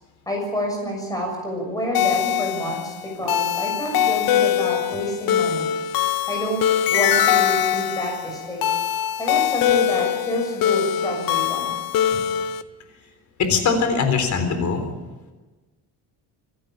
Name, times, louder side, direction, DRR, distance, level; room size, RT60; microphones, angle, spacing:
voice 1, 0.3-5.7 6.3-6.6 6.9-8.7 9.2-11.7, equal, 10° left, 1 dB, 6.9 m, -28 dB
sound 1, 1.9-12.6, left 10 dB, 65° left, 0.9 m, -22 dB
voice 2, 13.4-14.8, left 5 dB, 50° left, 7 dB, 3.9 m, -21 dB
26.0 x 13.0 x 8.7 m, 1.2 s
cardioid pair, 170°, 37 cm